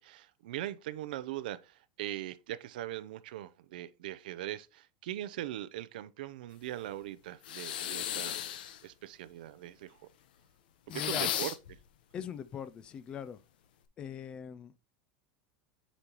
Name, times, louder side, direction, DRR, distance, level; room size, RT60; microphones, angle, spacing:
voice 1, 0.0-8.4 8.8-10.0 10.9-11.5, right 13 dB, 80° right, 0.6 m, -40 dB
sound 1, 7.4-8.8 10.9-11.7, left 11 dB, 90° left, 1.0 m, -35 dB
voice 2, 10.9-11.3 12.1-13.4 14.0-14.7, left 8 dB, 20° left, 0.4 m, -41 dB
8.4 x 5.2 x 3.0 m
supercardioid pair, 175°, 5 cm